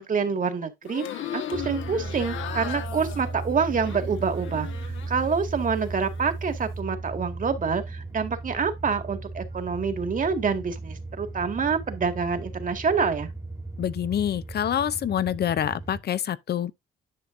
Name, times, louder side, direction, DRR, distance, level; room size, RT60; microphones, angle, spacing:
voice 1, 0.0-13.3, right 5 dB, 40° right, 1.9 m, -27 dB
sound 1, 0.8-5.3 5.6-6.3, left 10 dB, 75° left, 1.4 m, -37 dB
sound 2, 1.5-16.0, right 3 dB, 15° right, 1.5 m, -36 dB
voice 2, 13.8-16.7, left 10 dB, 55° left, 0.6 m, -26 dB
10.5 x 5.8 x 2.6 m
cardioid pair, 90°, 20 cm